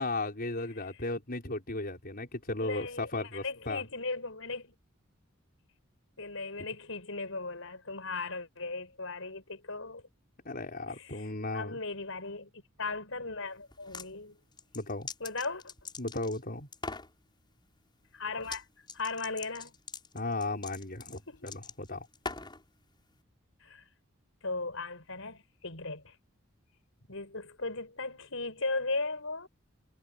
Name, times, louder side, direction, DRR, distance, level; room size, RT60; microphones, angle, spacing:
voice 1, 0.0-3.8 10.5-11.8 14.7-15.1 16.0-16.7 20.1-22.1, left 2 dB, 45° left, 5.3 m, -35 dB
voice 2, 2.6-4.7 6.2-10.0 10.9-11.2 11.5-14.4 15.2-15.7 18.1-18.6 18.9-19.7 21.3-21.5 23.6-23.9 24.4-26.1 27.1-29.5, left 3 dB, 70° left, 7.5 m, -37 dB
sound 1, 13.7-14.1 14.6-16.4 16.7-17.1 18.4-18.6 18.9-22.6, left 4 dB, 25° left, 5.5 m, -42 dB
head